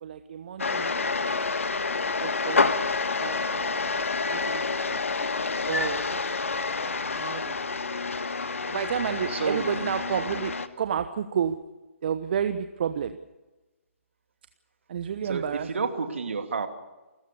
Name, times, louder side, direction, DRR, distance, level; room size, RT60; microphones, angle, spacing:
voice 1, 0.0-1.3 2.2-4.6 4.9-5.3 5.7-6.3 7.1-7.6 8.7-11.6 12.0-13.2 14.9-15.7, right 8 dB, 40° right, 10 dB, 1.1 m, -31 dB
sound 1, 0.6-10.7, left 4 dB, 65° left, 1.5 m, -28 dB
voice 2, 9.3-9.6 15.3-16.7, right 5 dB, 60° right, 6 dB, 2.8 m, -30 dB
29.0 x 14.5 x 6.9 m, 1.1 s
figure-of-eight pair, 140°, 8 cm